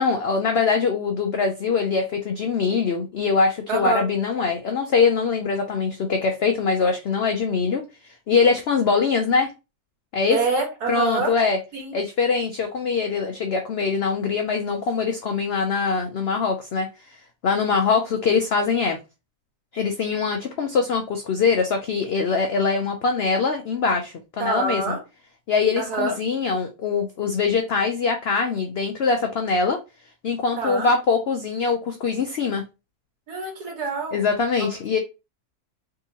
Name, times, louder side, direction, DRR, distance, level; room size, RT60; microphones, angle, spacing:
voice 1, 0.0-9.5 10.1-10.4 10.9-11.6 11.9-16.9 17.4-19.0 19.7-25.0 25.5-29.8 30.2-32.6 34.1-35.0, left 5 dB, 80° left, 4 dB, 0.5 m, -23 dB
voice 2, 3.7-4.0 10.3-11.3 11.7-11.9 24.4-25.0 25.8-26.2 30.6-30.9 33.3-34.3 34.6-34.8, right 3 dB, 80° right, 1 dB, 1.9 m, -26 dB
3.6 x 2.8 x 2.7 m, 0.28 s
omnidirectional pair, 1.6 m